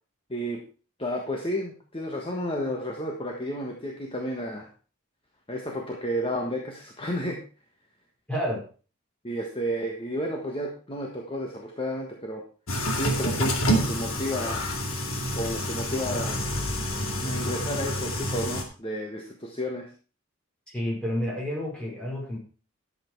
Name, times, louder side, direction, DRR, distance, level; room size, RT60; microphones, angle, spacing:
voice 1, 0.3-0.6 1.0-4.7 5.5-7.4 9.2-12.4 12.9-14.7 15.3-16.4 17.2-19.9, equal, 25° left, 1 dB, 1.5 m, -32 dB
voice 2, 8.3-8.6 20.7-22.4, equal, 5° left, -4 dB, 5.1 m, -30 dB
sound 1, 12.7-18.6, equal, 80° left, 2.4 m, -28 dB
11.5 x 7.9 x 4.6 m, 0.38 s
head